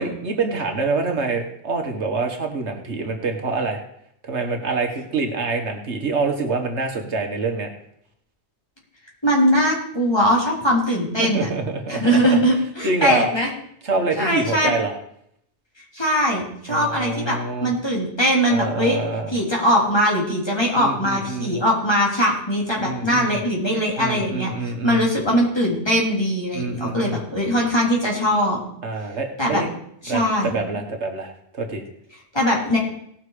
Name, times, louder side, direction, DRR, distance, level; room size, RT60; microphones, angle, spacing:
voice 1, 0.0-3.8 4.2-7.7 11.2-12.4 12.8-13.3 13.8-14.9 16.7-17.8 18.5-19.3 20.8-21.6 22.8-23.3 24.0-25.1 26.5-27.2 28.8-29.7 30.1-31.8, right 3 dB, 75° right, 4 dB, 1.8 m, -26 dB
voice 2, 9.2-11.5 11.9-13.5 14.2-14.8 15.9-19.0 19.3-28.6 29.4-29.6 30.0-30.5 32.3-32.8, equal, 20° left, -3 dB, 3.4 m, -21 dB
17.5 x 6.6 x 5.0 m, 0.70 s
omnidirectional pair, 1.2 m